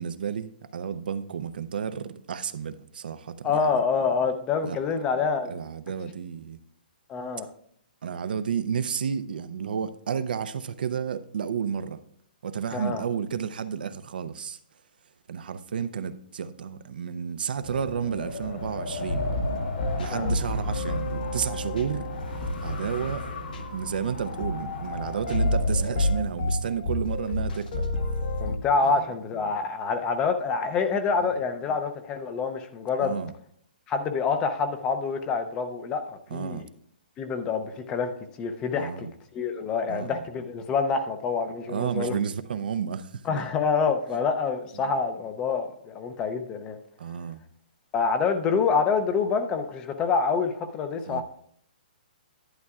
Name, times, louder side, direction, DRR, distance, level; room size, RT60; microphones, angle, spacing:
voice 1, 0.0-3.8 4.6-4.8 5.5-6.6 8.0-12.0 12.4-14.6 15.3-19.3 20.0-22.1 22.6-23.3 23.7-27.9 28.8-29.0 31.2-31.3 33.0-33.3 36.3-36.7 38.8-39.1 39.9-40.2 41.7-43.2 47.0-47.4 51.1-51.2, right 7 dB, 70° right, 0.5 m, -31 dB
voice 2, 3.4-5.5 7.1-7.5 12.7-13.0 20.0-20.3 28.4-33.1 33.9-36.6 37.2-38.1 38.4-39.1 39.3-42.2 43.2-46.8 47.9-51.2, left 5 dB, 15° left, 0.5 m, -27 dB
Wind, 17.6-26.3, left 2 dB, 80° left, 2.6 m, -36 dB
sound 1, 19.1-28.6, left 1 dB, 60° left, 1.4 m, -30 dB
11.0 x 9.3 x 2.4 m
hypercardioid pair, 160°, 5 cm